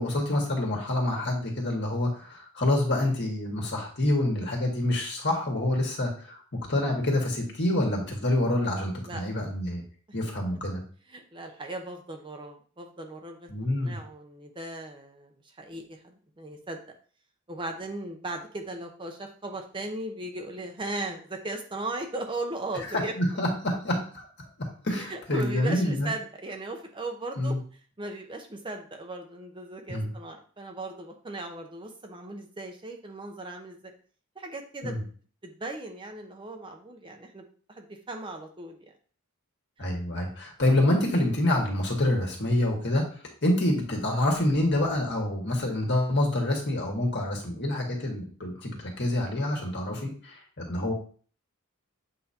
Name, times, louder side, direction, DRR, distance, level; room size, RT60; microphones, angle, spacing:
voice 1, 0.0-6.4 6.7-9.8 10.1-10.8 13.5-14.0 23.2-24.2 24.6-26.1 27.4-27.6 29.9-30.1 34.8-35.0 39.8-43.1 43.4-50.9, left 1 dB, 50° left, 0 dB, 1.8 m, -27 dB
voice 2, 11.1-13.5 13.8-15.3 15.6-16.8 17.5-23.1 25.0-27.6 28.0-33.9 34.4-35.0 35.4-38.9, right 2 dB, 20° right, 3 dB, 0.7 m, -37 dB
7.9 x 4.9 x 2.9 m, 0.43 s
head